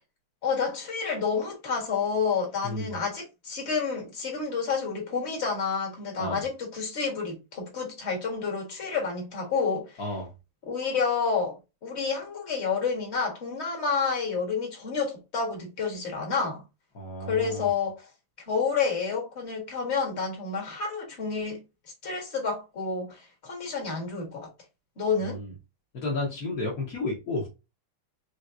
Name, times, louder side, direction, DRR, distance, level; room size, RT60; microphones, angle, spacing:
voice 1, 0.4-9.9 10.7-16.6 17.3-18.1 18.5-21.6 22.0-24.5 25.0-25.4, left 5 dB, 35° left, 1.1 m, -29 dB
voice 2, 2.6-2.9 6.2-6.4 10.0-10.3 16.9-17.7 25.2-25.5 25.9-27.5, left 2 dB, 80° left, 0.8 m, -32 dB
5.0 x 3.1 x 2.6 m
omnidirectional pair, 3.4 m